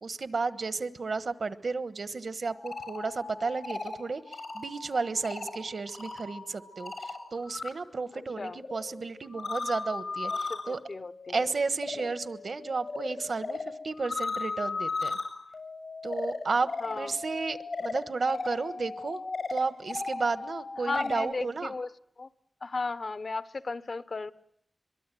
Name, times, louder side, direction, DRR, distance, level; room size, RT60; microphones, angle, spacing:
voice 1, 0.0-10.3 10.7-10.8 11.3-15.2 16.0-19.2 19.5-21.7, right 4 dB, 85° right, 1.3 m, -33 dB
sound 1, 2.5-7.7 8.0-21.3, left 3 dB, 90° left, 7.0 m, -37 dB
voice 2, 8.1-8.6 10.3-11.4 12.0-12.1 16.8-17.1 20.9-21.9 22.2-22.3 22.6-24.3, left 3 dB, 65° left, 1.1 m, -35 dB
23.5 x 23.0 x 9.2 m
wide cardioid pair, 70°, 0 cm